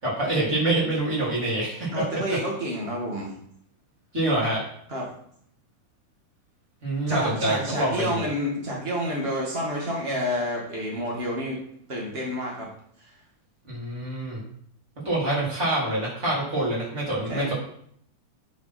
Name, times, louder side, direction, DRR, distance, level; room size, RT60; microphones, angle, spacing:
voice 1, 0.0-1.9 2.3-2.4 4.1-4.6 6.8-8.3 13.7-14.4 15.0-17.5, right 1 dB, 20° right, -6 dB, 3.4 m, -26 dB
voice 2, 1.9-3.3 4.9-5.1 7.1-11.6 11.9-12.7 13.0-13.1 17.3-17.5, equal, 65° right, -3 dB, 0.6 m, -29 dB
9.2 x 6.9 x 4.3 m, 0.67 s
omnidirectional pair, 4.6 m